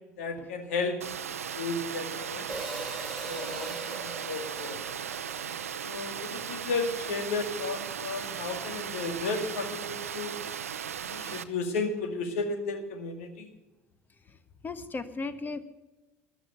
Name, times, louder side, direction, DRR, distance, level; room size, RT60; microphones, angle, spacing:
voice 1, 0.2-2.5 3.3-4.8 5.8-10.3 11.0-13.5, left 3 dB, 65° left, 7 dB, 2.1 m, -34 dB
Water, 1.0-11.4, right 8 dB, 80° right, 0.7 m, -37 dB
Hi-hat, 2.5-6.8, right 1 dB, 5° left, 4.8 m, -42 dB
voice 2, 14.6-15.6, left 3 dB, 25° left, 13 dB, 1.3 m, -37 dB
14.0 x 11.5 x 6.8 m, 1.1 s
figure-of-eight pair, 65°, 8 cm